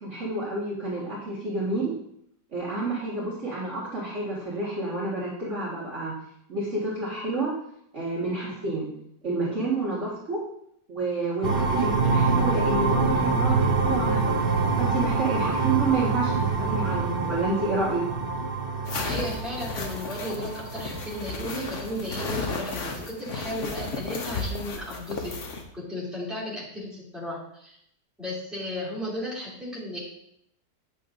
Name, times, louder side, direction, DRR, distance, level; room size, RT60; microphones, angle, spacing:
voice 1, 0.0-1.9 2.5-6.2 6.5-7.5 7.9-8.9 9.2-10.4 10.9-14.5 14.8-18.0, right 3 dB, 45° right, -8 dB, 1.9 m, -29 dB
sound 1, 11.4-21.9, right 4 dB, 80° right, 0.5 m, -26 dB
sound 2, 18.8-25.6, left 4 dB, 50° left, 1.1 m, -34 dB
voice 2, 19.0-25.3 25.7-27.8 28.2-30.0, equal, ahead, -8 dB, 2.6 m, -34 dB
8.6 x 6.6 x 2.6 m, 0.72 s
omnidirectional pair, 1.9 m